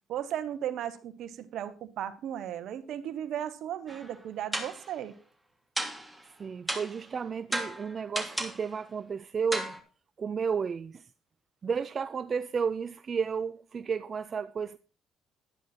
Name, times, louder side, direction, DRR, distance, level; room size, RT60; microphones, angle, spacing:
voice 1, 0.1-5.1, right 10 dB, 70° right, 1.1 m, -36 dB
sound 1, 3.9-4.2 4.5-4.9 5.8-6.2 6.7-7.1 7.5-8.7 9.5-9.8, right 1 dB, ahead, 2.8 m, -34 dB
voice 2, 6.4-9.8 10.2-11.1 11.6-14.8, right 6 dB, 45° right, 0.4 m, -32 dB
11.5 x 10.5 x 4.3 m
hypercardioid pair, 50°, 0 cm